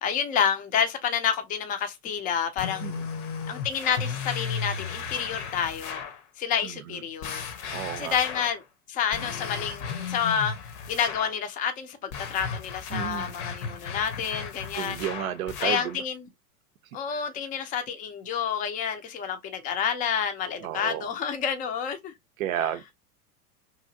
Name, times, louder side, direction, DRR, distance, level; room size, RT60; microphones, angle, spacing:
voice 1, 0.0-2.8 3.5-6.0 6.4-7.4 7.9-8.6 8.9-10.5 10.9-15.0 15.6-16.2 16.9-22.1, left 7 dB, 20° left, 0.4 m, -29 dB
sound 1, 2.6-6.2 7.2-8.6 9.1-11.4 12.1-16.0, left 6 dB, 50° left, 0.7 m, -35 dB
voice 2, 6.6-7.0 7.7-8.2 12.9-13.3 14.8-16.0 17.1-17.2 20.6-21.1 22.4-22.9, right 11 dB, 65° right, 0.5 m, -32 dB
2.9 x 2.6 x 2.6 m
hypercardioid pair, 95°, 45 cm